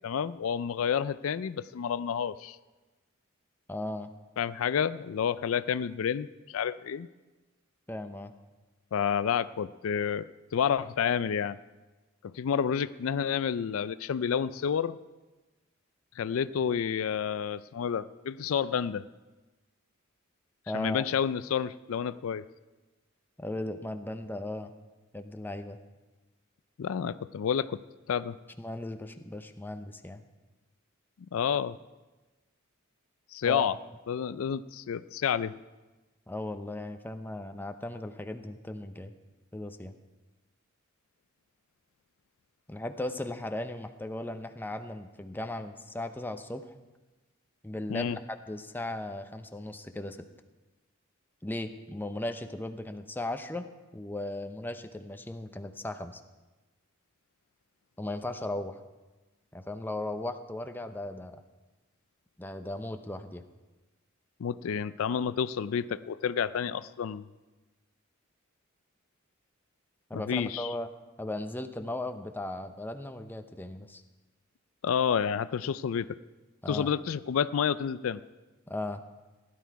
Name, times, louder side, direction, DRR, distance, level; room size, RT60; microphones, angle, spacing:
voice 1, 0.0-2.6 4.4-7.1 8.9-11.6 12.2-15.0 16.2-19.1 20.7-22.4 26.8-27.8 28.1-28.4 31.3-31.8 33.3-33.7 34.1-35.5 47.9-48.2 64.4-67.3 70.1-70.7 74.8-76.2 76.7-78.2, left 7 dB, 75° left, 15 dB, 0.4 m, -29 dB
voice 2, 3.7-4.1 7.9-8.3 20.7-21.1 23.4-24.7 25.1-25.8 28.6-30.2 33.5-33.7 36.3-39.1 39.5-39.9 42.7-46.7 47.6-50.2 51.4-53.7 53.9-56.2 58.0-58.8 59.5-61.4 62.4-63.4 70.1-70.9 71.2-74.0 76.6-76.9 78.7-79.0, left 1 dB, 10° left, 8 dB, 0.6 m, -37 dB
16.0 x 11.5 x 4.7 m, 1.2 s
head